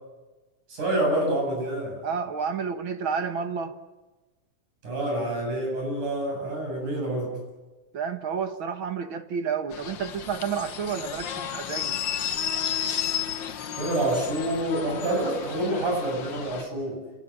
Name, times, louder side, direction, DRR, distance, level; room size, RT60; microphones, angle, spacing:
voice 1, 0.7-2.0 4.8-7.3 13.8-17.0, right 1 dB, 80° right, 1 dB, 9.7 m, -27 dB
voice 2, 2.0-3.8 7.9-12.0, right 6 dB, 50° right, 9 dB, 1.7 m, -30 dB
sound 1, 9.7-16.6, left 9 dB, 55° left, 1.4 m, -32 dB
28.5 x 18.0 x 8.8 m, 1.2 s
omnidirectional pair, 3.5 m